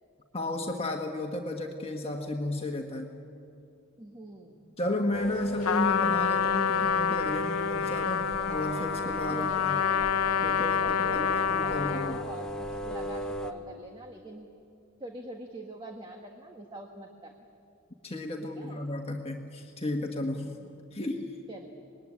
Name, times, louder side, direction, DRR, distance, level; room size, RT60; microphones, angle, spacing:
voice 1, 0.3-3.1 4.8-9.8 10.4-12.3 18.0-20.6 20.9-21.4, left 1 dB, 30° left, 2 dB, 1.5 m, -33 dB
voice 2, 4.0-4.6 9.3-11.3 11.6-14.5 15.0-17.3 18.4-18.8 20.6-20.7 21.5-21.7, right 2 dB, 20° right, 3 dB, 1.5 m, -45 dB
sound 1, 5.1-13.5, right 1 dB, 5° left, 1.1 m, -39 dB
Trumpet, 5.6-12.3, left 7 dB, 85° left, 0.7 m, -27 dB
25.5 x 20.5 x 9.8 m, 2.5 s
head